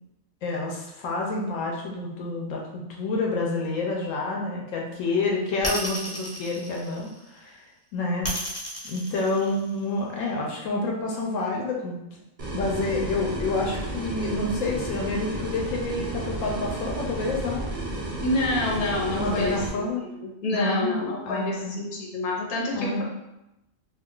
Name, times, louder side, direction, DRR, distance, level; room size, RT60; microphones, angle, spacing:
voice 1, 0.4-7.1 7.3-7.6 7.9-8.3 8.8-12.0 12.5-17.6 19.1-20.1 20.5-21.0 21.3-21.7 22.7-23.0, left 3 dB, 75° left, -1 dB, 0.9 m, -28 dB
sound 1, 5.6-7.4 8.2-10.0, equal, 20° left, 0.5 m, -33 dB
sound 2, 12.4-19.7, right 2 dB, 60° right, 0.4 m, -32 dB
voice 2, 18.2-23.0, left 2 dB, 50° left, -2 dB, 0.8 m, -28 dB
2.4 x 2.3 x 3.6 m, 0.91 s
omnidirectional pair, 1.4 m